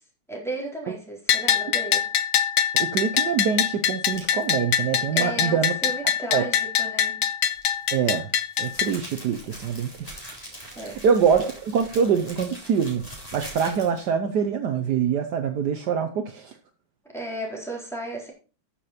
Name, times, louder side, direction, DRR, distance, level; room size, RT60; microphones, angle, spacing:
voice 1, 0.3-2.0 5.1-7.2 10.8-11.0 17.1-18.3, right 2 dB, ahead, -3 dB, 3.9 m, -34 dB
Bell, 1.3-8.9, left 9 dB, 65° left, 0.9 m, -24 dB
voice 2, 2.8-5.8 6.3-6.4 7.9-8.3 8.6-10.4 10.8-16.6, right 7 dB, 65° right, 7 dB, 1.4 m, -24 dB
sound 1, 4.1-4.4 7.5-14.1, equal, 20° left, 3.8 m, -42 dB
13.0 x 6.9 x 4.3 m, 0.35 s
omnidirectional pair, 2.1 m